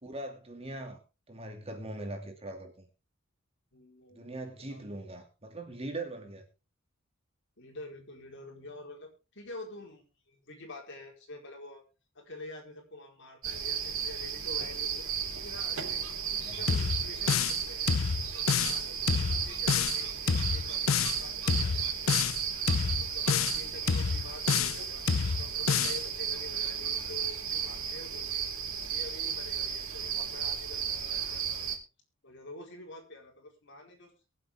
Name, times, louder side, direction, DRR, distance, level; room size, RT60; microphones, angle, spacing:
voice 1, 0.0-1.0 1.3-2.8 4.1-6.4 16.4-16.7, right 2 dB, 30° right, 2.7 m, -41 dB
voice 2, 3.7-4.3 4.7-4.9 7.6-11.8 12.1-15.1 15.4-17.9 18.3-22.2 22.7-25.1 25.4-28.5 28.9-31.7 32.2-34.1, left 2 dB, 60° left, 4.6 m, -47 dB
sound 1, 13.4-31.8, right 7 dB, 85° right, 3.7 m, -34 dB
sound 2, 16.7-17.6 17.9-18.8 19.1-20.0 20.3-21.2 21.5-22.4 22.7-23.6 23.9-24.8 25.1-26.0, left 6 dB, 80° left, 0.7 m, -28 dB
22.5 x 7.7 x 3.7 m
head